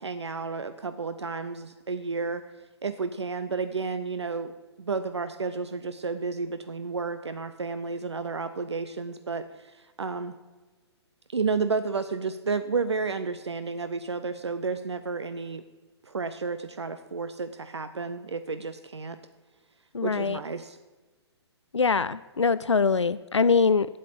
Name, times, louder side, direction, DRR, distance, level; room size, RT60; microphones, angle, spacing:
voice 1, 0.0-2.4 2.8-4.5 4.8-9.7 10.0-10.4 11.3-15.6 16.1-19.2 20.0-20.8, right 4 dB, 70° right, 10 dB, 0.7 m, -31 dB
voice 2, 19.9-20.4 21.7-23.9, left 5 dB, 85° left, 16 dB, 0.4 m, -23 dB
8.5 x 7.7 x 8.4 m, 1.3 s
figure-of-eight pair, 125°, 15 cm